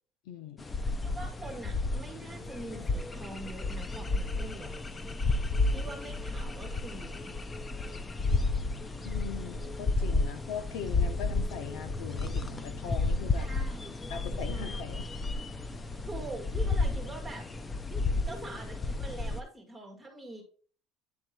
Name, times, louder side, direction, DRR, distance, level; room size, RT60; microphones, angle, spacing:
voice 1, 0.3-0.7 9.0-13.5 14.1-15.1, left 7 dB, 75° left, 1.0 m, -40 dB
sound 1, 0.6-19.4, left 3 dB, 15° left, 0.5 m, -32 dB
voice 2, 1.0-4.7 5.7-7.4 13.4-14.8 16.0-17.5 18.3-20.4, right 2 dB, 5° right, 2.0 m, -44 dB
9.7 x 3.6 x 4.4 m
cardioid pair, 175°, 0 cm